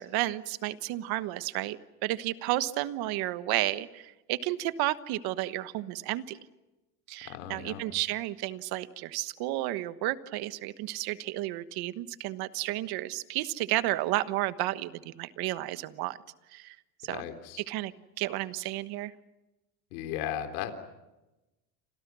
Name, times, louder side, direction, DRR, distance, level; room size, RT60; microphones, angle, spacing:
voice 1, 0.0-6.4 7.1-16.2 16.5-16.8 17.0-17.2 17.7-19.1, right 16 dB, 50° right, 13 dB, 1.3 m, -32 dB
voice 2, 7.2-7.8 17.1-17.6 19.9-20.7, left 10 dB, 70° left, 7 dB, 3.9 m, -36 dB
29.0 x 26.5 x 6.3 m, 1.0 s
supercardioid pair, 140°, 48 cm